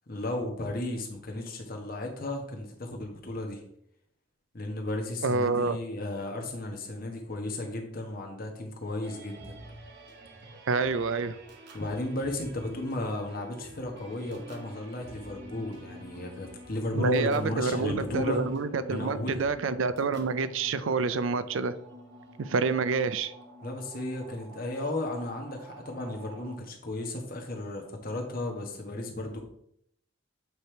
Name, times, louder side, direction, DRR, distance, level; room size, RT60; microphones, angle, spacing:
voice 1, 0.1-3.6 4.5-9.5 11.7-18.4 18.9-19.4 23.6-29.4, left 1 dB, 45° left, 2 dB, 1.3 m, -34 dB
voice 2, 5.2-5.8 10.7-11.3 17.0-21.7 22.4-23.3, right 4 dB, 75° right, 13 dB, 0.5 m, -27 dB
sound 1, 9.0-26.6, right 1 dB, 55° right, 1.2 m, -49 dB
8.1 x 3.4 x 4.5 m, 0.71 s
head